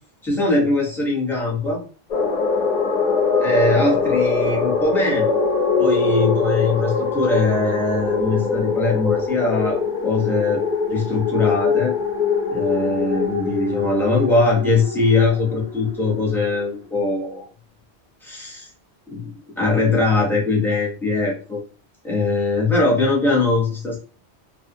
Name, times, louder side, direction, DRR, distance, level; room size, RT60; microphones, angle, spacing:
voice 1, 0.2-1.8 3.4-5.3 5.8-9.8 10.0-10.6 10.9-11.9 12.5-17.5 18.2-18.7 19.1-21.6 22.0-24.0, left 3 dB, ahead, -3 dB, 0.7 m, -21 dB
sound 1, 2.1-16.7, left 5 dB, 45° left, 0.6 m, -22 dB
2.5 x 2.1 x 2.7 m, 0.38 s
omnidirectional pair, 1.1 m